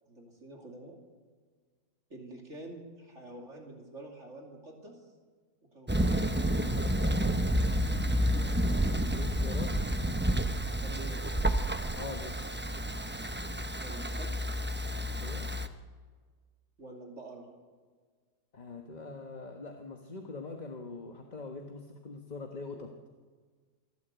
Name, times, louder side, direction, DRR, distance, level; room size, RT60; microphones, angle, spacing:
voice 1, 0.1-1.0 2.1-4.9 5.7-6.8 10.8-11.5 13.8-14.4 16.8-17.5 22.7-22.8, right 2 dB, 45° right, 1 dB, 3.0 m, -47 dB
Thunder, 5.9-15.7, equal, 15° right, 0.4 m, -30 dB
voice 2, 9.1-9.8 12.0-12.4 15.2-15.5 18.5-22.9, left 3 dB, 30° left, 3 dB, 1.3 m, -43 dB
27.5 x 12.0 x 8.1 m, 1.6 s
omnidirectional pair, 1.7 m